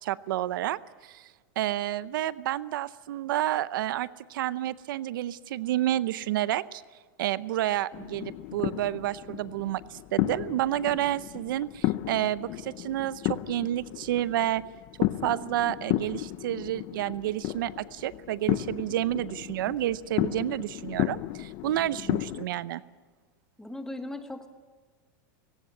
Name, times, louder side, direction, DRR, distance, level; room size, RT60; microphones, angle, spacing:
voice 1, 0.0-1.3 1.6-6.8 7.2-14.6 15.0-22.8, right 13 dB, 85° right, 17 dB, 0.7 m, -30 dB
sound 1, 7.9-22.4, left 17 dB, 45° left, 0.7 m, -33 dB
voice 2, 23.6-24.5, left 1 dB, 5° left, 6 dB, 1.5 m, -38 dB
17.5 x 17.5 x 9.5 m, 1.4 s
supercardioid pair, 150°, 11 cm